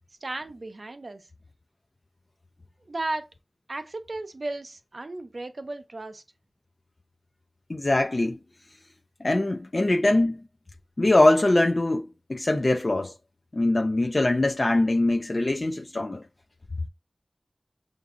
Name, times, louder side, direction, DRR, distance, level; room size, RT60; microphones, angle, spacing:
voice 1, 0.2-1.2 2.9-3.3 3.7-6.2, right 2 dB, 65° right, 0.6 m, -34 dB
voice 2, 7.7-8.4 9.2-10.4 11.0-13.1 13.5-16.2, left 2 dB, 50° left, 0.4 m, -22 dB
5.8 x 2.6 x 2.5 m
wide cardioid pair, 60°, 0 cm